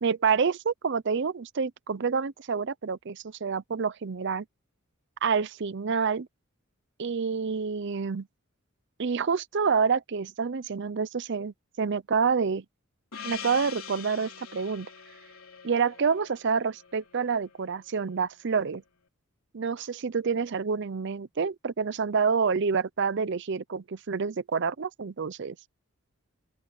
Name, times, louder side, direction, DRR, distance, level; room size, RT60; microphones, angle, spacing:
voice 1, 0.0-4.4 5.2-6.3 7.0-8.3 9.0-12.6 13.2-14.9 15.6-18.8 19.5-25.6, right 5 dB, 60° right, 0.6 m, -28 dB
Gong, 13.1-17.9, left 8 dB, 90° left, 3.2 m, -44 dB
open air
head